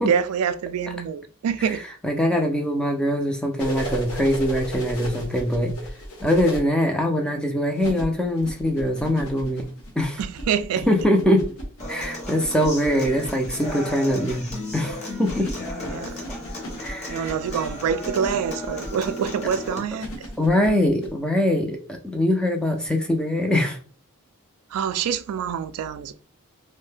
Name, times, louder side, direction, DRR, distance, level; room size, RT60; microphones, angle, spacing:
voice 1, 0.0-1.8 10.2-10.9 15.9-16.2 17.1-20.3 20.7-20.8 24.7-26.1, right 7 dB, 80° right, 0.3 m, -26 dB
voice 2, 2.0-5.7 6.2-9.6 10.0-10.2 10.9-11.5 11.9-15.5 16.3-16.4 16.8-17.2 20.4-23.8, left 1 dB, 5° left, 0.4 m, -22 dB
sound 1, 3.6-6.6 7.7-21.1 22.8-22.9, equal, 70° left, 0.9 m, -36 dB
Human voice / Acoustic guitar, 11.8-19.8, left 1 dB, 30° left, 0.8 m, -35 dB
2.6 x 2.1 x 3.3 m
head